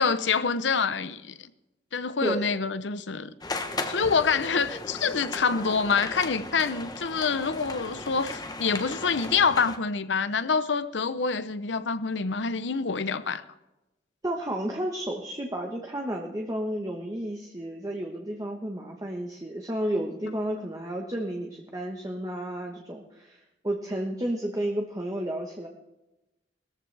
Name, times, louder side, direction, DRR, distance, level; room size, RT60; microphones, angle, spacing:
voice 1, 0.0-1.3 1.9-3.3 3.9-13.4, left 5 dB, 90° left, 0.8 m, -26 dB
sound 1, 3.4-9.8, left 2 dB, 20° left, 1.1 m, -36 dB
voice 2, 14.2-25.7, right 1 dB, 20° right, 1.2 m, -32 dB
19.0 x 14.0 x 3.4 m
head